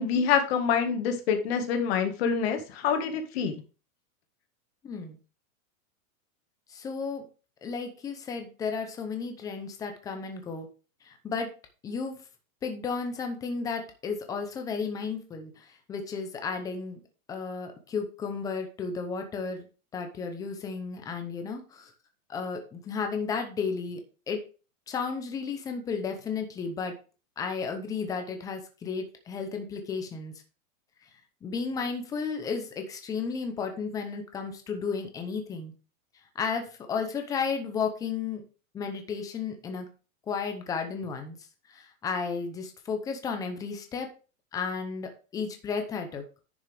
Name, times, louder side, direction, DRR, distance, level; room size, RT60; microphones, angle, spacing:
voice 1, 0.0-3.6, left 6 dB, 45° left, 5 dB, 1.9 m, -26 dB
voice 2, 4.8-5.2 6.7-7.3 7.6-10.7 11.0-11.5 11.8-12.2 12.6-17.0 17.3-19.7 19.9-21.9 22.3-24.0 24.3-24.4 24.9-26.9 27.4-30.4 31.4-35.7 36.3-38.4 38.7-39.9 40.3-41.4 41.7-44.1 44.5-46.2, left 5 dB, 10° left, 5 dB, 0.7 m, -33 dB
10.0 x 6.2 x 3.5 m, 0.34 s
supercardioid pair, 170°, 43 cm